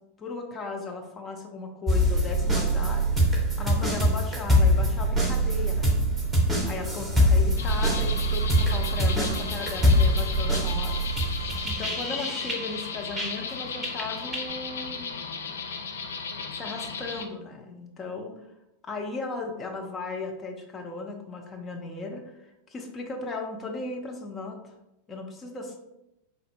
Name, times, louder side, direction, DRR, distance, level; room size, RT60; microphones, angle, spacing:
voice 1, 0.2-3.3 3.6-6.1 6.7-11.3 11.6-15.2 16.5-18.3 18.8-24.7 25.1-25.8, left 3 dB, 20° left, 2 dB, 0.6 m, -36 dB
sound 1, 1.9-13.5 13.8-14.5, equal, 10° right, 0.8 m, -24 dB
sound 2, 7.6-17.3, left 5 dB, 65° left, 0.4 m, -35 dB
4.0 x 3.9 x 2.2 m, 0.91 s
figure-of-eight pair, 90°, 0 cm